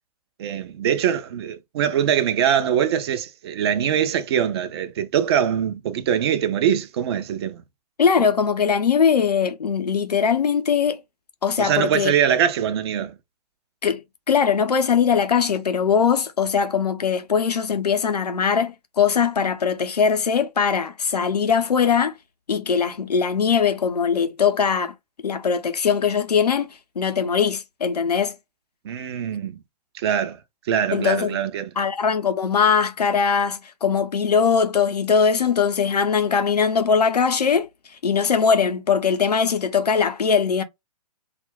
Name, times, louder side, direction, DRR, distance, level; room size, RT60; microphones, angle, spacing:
voice 1, 0.4-7.6 8.2-8.3 11.6-13.1 28.8-29.6 29.9-30.4 30.7-31.7, right 9 dB, 40° right, 0.5 m, -23 dB
voice 2, 8.0-11.0 11.4-12.1 13.8-22.1 22.5-24.9 25.2-26.7 27.0-28.4 30.9-31.4 31.8-37.7 38.0-40.6, left 6 dB, 80° left, 0.7 m, -21 dB
2.4 x 2.2 x 3.4 m
figure-of-eight pair, 125°, 20 cm